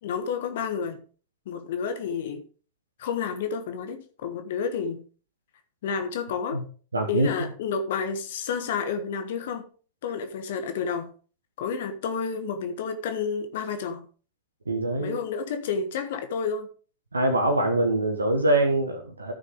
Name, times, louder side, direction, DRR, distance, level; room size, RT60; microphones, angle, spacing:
voice 1, 0.0-1.0 1.5-2.4 3.0-5.0 5.8-6.6 7.1-9.7 10.0-11.1 11.6-14.0 15.0-16.7, left 6 dB, 55° left, 1.2 m, -30 dB
voice 2, 6.9-7.3 14.7-15.2 17.1-19.3, right 2 dB, 80° right, 1.3 m, -24 dB
13.5 x 6.5 x 3.6 m
figure-of-eight pair, 90°, 0 cm